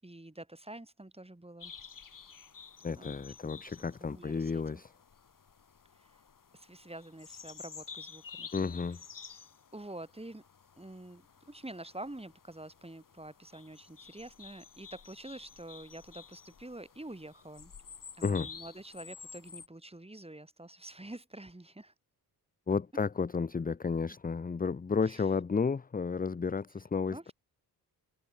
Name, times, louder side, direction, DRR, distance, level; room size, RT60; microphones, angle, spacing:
voice 1, 0.0-1.7 3.0-4.8 5.9-6.2 6.5-8.8 9.3-9.4 9.7-10.5 10.8-17.7 18.2-21.9 25.0-25.3 27.1-27.3, right 1 dB, 15° right, 7.0 m, -47 dB
sound 1, 1.6-19.7, left 6 dB, 55° left, 3.5 m, -51 dB
voice 2, 2.8-4.9 8.5-9.0 18.2-18.5 22.7-27.3, left 5 dB, 20° left, 0.7 m, -32 dB
cardioid pair, 55°, 39 cm